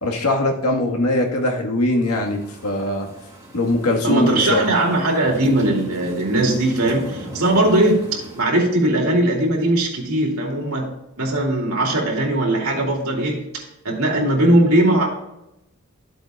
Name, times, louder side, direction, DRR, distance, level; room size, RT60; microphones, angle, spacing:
voice 1, 0.0-3.1 3.5-4.6, left 1 dB, 85° left, 2 dB, 1.6 m, -21 dB
sound 1, 2.0-8.4, equal, 15° right, 2.4 m, -39 dB
voice 2, 4.0-15.1, right 1 dB, 70° right, -1 dB, 2.6 m, -19 dB
13.0 x 7.9 x 2.4 m, 0.89 s
head